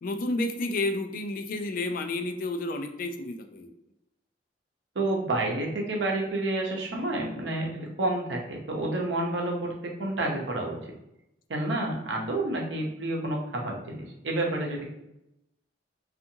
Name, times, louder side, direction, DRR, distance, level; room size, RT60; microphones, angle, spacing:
voice 1, 0.0-3.7, left 2 dB, 50° left, 6 dB, 0.3 m, -31 dB
voice 2, 4.9-10.8 11.5-14.9, right 2 dB, 75° right, -1 dB, 0.7 m, -29 dB
2.7 x 2.4 x 2.6 m, 0.85 s
head